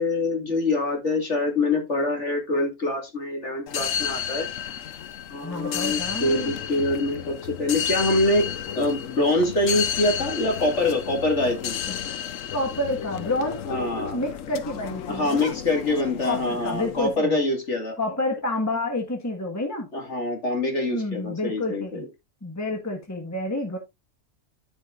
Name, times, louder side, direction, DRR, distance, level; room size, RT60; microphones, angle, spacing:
voice 1, 0.0-4.5 5.3-8.5 8.7-11.8 13.7-14.2 15.1-18.0 19.9-22.0, left 2 dB, 45° left, 2.5 m, -25 dB
sound 1, 3.7-17.1, left 9 dB, 65° left, 1.0 m, -32 dB
voice 2, 5.4-6.5 11.9-12.0 12.5-15.5 16.2-17.4 18.0-19.9 20.9-22.0 22.4-23.8, left 2 dB, 10° left, 1.4 m, -29 dB
14.5 x 5.4 x 2.5 m
omnidirectional pair, 1.6 m